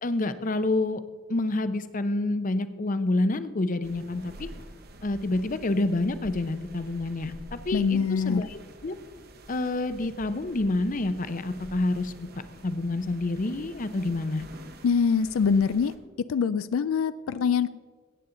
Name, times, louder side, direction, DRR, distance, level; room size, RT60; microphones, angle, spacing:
voice 1, 0.0-1.0 1.3-4.5 5.0-9.0 9.5-12.1 12.6-14.4, left 2 dB, 40° left, 11 dB, 0.6 m, -28 dB
sound 1, 3.8-16.0, right 1 dB, 50° right, 1.0 m, -48 dB
voice 2, 7.7-8.4 14.8-16.0 16.3-17.7, left 6 dB, 85° left, 14 dB, 0.4 m, -24 dB
17.0 x 8.3 x 3.8 m, 1.5 s
head